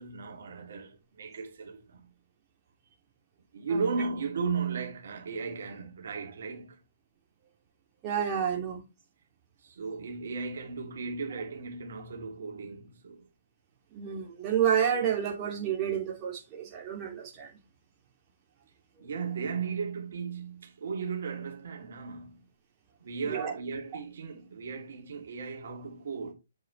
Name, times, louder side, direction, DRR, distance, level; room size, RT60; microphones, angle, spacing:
voice 1, 0.0-2.1 3.5-6.8 9.6-13.3 19.0-22.4 23.0-26.3, right 5 dB, 55° right, 2.9 m, -36 dB
voice 2, 8.0-8.8 13.9-17.5 23.3-23.5, right 8 dB, 25° right, 2.6 m, -29 dB
7.8 x 7.6 x 3.3 m
figure-of-eight pair, 130°, 0 cm